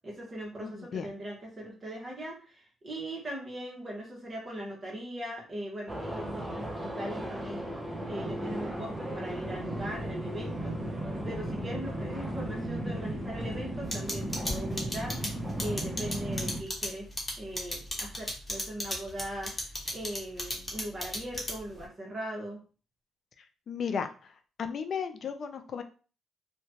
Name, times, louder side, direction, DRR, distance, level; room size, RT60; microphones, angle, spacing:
voice 1, 0.0-7.6 8.0-11.0 11.2-15.2 15.6-17.1 17.4-22.6, right 1 dB, 35° right, -3 dB, 1.1 m, -40 dB
voice 2, 0.6-1.1 23.7-24.3 24.6-25.8, left 6 dB, 55° left, 8 dB, 0.4 m, -34 dB
sound 1, 5.9-16.6, right 1 dB, 10° right, 0.7 m, -35 dB
sound 2, 13.9-21.8, left 1 dB, 20° left, 1.1 m, -34 dB
2.8 x 2.2 x 2.8 m, 0.37 s
cardioid pair, 90°, 0 cm